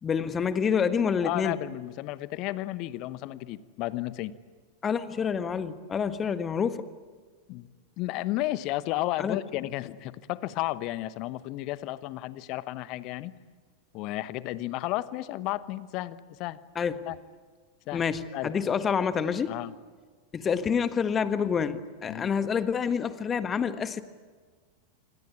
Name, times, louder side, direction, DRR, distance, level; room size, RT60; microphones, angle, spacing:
voice 1, 0.0-1.6 4.8-6.9 9.2-9.4 16.7-17.0 17.9-19.5 20.3-24.0, left 6 dB, 20° left, 12 dB, 1.5 m, -27 dB
voice 2, 1.2-4.3 7.5-7.7 8.0-13.3 13.9-16.6 17.1-17.2 17.9-18.1 18.3-18.5 19.5-19.7 22.1-22.3, left 16 dB, 40° left, 17 dB, 1.1 m, -33 dB
27.0 x 25.0 x 8.7 m, 1.5 s
figure-of-eight pair, 90°, 0 cm